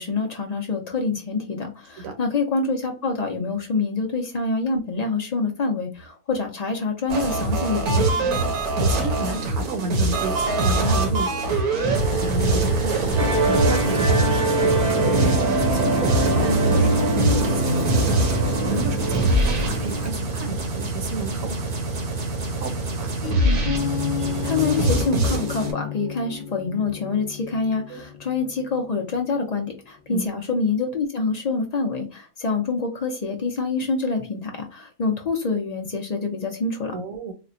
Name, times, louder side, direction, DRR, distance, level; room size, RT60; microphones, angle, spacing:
voice 1, 0.0-8.1 23.4-23.6 24.4-36.9, left 4 dB, 70° left, 3 dB, 0.3 m, -26 dB
sound 1, 7.1-25.7, right 2 dB, 85° right, 1.4 m, -23 dB
voice 2, 8.2-11.4 12.2-21.6 22.6-23.1 27.9-28.0 30.1-30.4 36.9-37.3, right 3 dB, 70° right, 7 dB, 1.0 m, -33 dB
Musical instrument, 13.1-20.1, right 1 dB, 35° right, 0.7 m, -23 dB
sound 2, 23.2-29.0, left 7 dB, 35° left, 1.0 m, -31 dB
4.1 x 2.1 x 2.5 m, 0.33 s
omnidirectional pair, 1.5 m